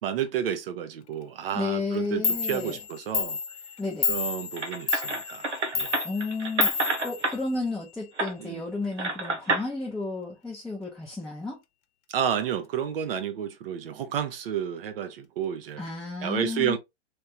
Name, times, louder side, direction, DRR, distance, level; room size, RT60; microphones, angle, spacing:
voice 1, 0.0-3.4 4.1-5.5 5.7-5.9 8.4-8.6 12.1-15.9 16.2-16.8, right 9 dB, 55° right, 0.9 m, -31 dB
voice 2, 1.5-2.8 3.8-4.1 6.0-6.7 7.0-11.6 15.8-16.8, left 3 dB, ahead, 0.6 m, -32 dB
Clock, 1.9-2.0 2.2-7.9, left 6 dB, 75° left, 0.6 m, -31 dB
sound 1, 4.6-7.4 8.2-8.3 9.0-9.7, right 3 dB, 85° right, 1.1 m, -28 dB
3.4 x 3.3 x 2.7 m
hypercardioid pair, 115°, 34 cm